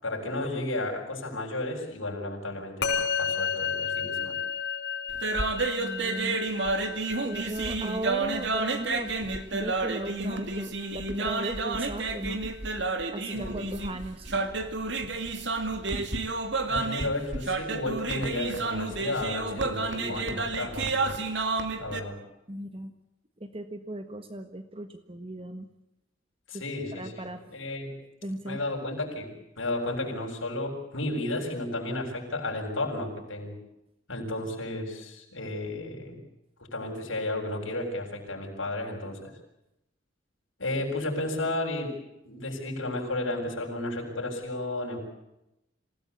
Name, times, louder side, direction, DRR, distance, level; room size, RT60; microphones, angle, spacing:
voice 1, 0.0-4.4 13.3-13.6 16.6-21.4 21.8-22.2 26.5-27.3 27.5-27.9 28.5-33.6 34.1-36.2 36.6-39.3 40.6-41.9 42.2-45.0, left 2 dB, 80° left, 1 dB, 7.6 m, -33 dB
Musical instrument, 2.8-12.4, left 6 dB, 55° left, 6.5 m, -34 dB
sound 1, 5.1-22.0, right 3 dB, 60° right, 2.5 m, -30 dB
voice 2, 5.8-6.4 7.2-9.2 9.5-12.4 13.1-14.4 22.5-22.9 23.4-25.7 26.5-26.6 26.9-27.6 28.2-28.6, right 1 dB, 30° right, 8 dB, 1.5 m, -37 dB
27.5 x 18.0 x 8.4 m, 0.88 s
head